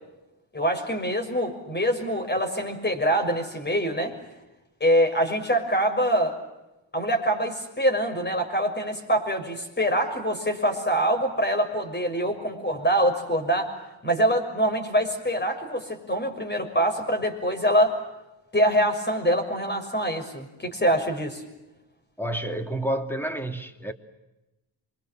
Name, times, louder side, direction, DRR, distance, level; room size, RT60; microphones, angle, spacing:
voice 1, 0.5-4.1 4.8-6.4 6.9-13.7 14.0-18.0 18.5-21.4, equal, 20° left, 6.4 m, -24 dB
voice 2, 22.2-23.9, right 1 dB, 5° left, 2.6 m, -29 dB
28.0 x 24.5 x 7.7 m
wide cardioid pair, 125°, 47 cm